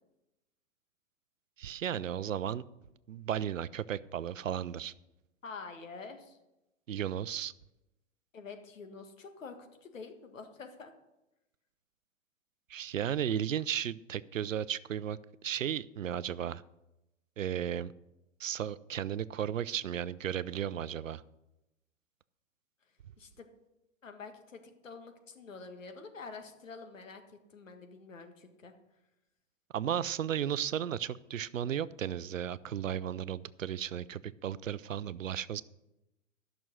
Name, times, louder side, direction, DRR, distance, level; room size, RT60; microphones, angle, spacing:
voice 1, 1.6-2.6 3.1-4.9 6.9-7.5 12.7-16.6 17.4-17.9 18.4-21.2 29.7-35.6, right 9 dB, 85° right, 18 dB, 0.6 m, -34 dB
voice 2, 5.4-6.4 8.3-10.9 23.2-23.5 24.0-28.7, left 4 dB, 85° left, 6 dB, 1.8 m, -47 dB
13.5 x 6.3 x 6.2 m, 0.95 s
hypercardioid pair, 115°, 38 cm